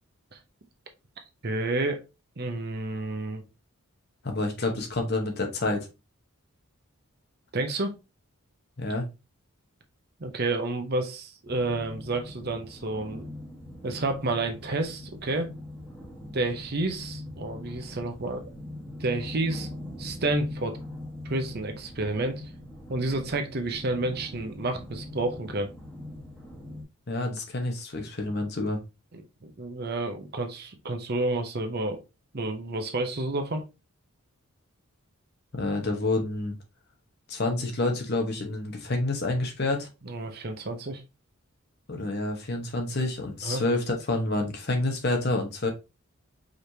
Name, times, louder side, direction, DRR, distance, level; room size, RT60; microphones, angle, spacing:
voice 1, 1.4-2.0 2.4-3.4 7.5-8.0 10.2-13.3 13.8-15.5 16.3-18.4 19.0-19.7 20.0-20.8 21.3-22.4 22.9-25.7 29.1-32.0 32.3-33.6 40.1-41.0 43.4-43.6, right 2 dB, 45° right, 0.7 m, -30 dB
voice 2, 4.2-5.9 8.8-9.1 27.1-28.8 35.5-36.6 37.3-39.9 41.9-45.7, left 2 dB, 45° left, 0.9 m, -28 dB
sound 1, 11.5-26.8, left 1 dB, 5° left, 1.1 m, -41 dB
5.0 x 3.1 x 2.7 m
head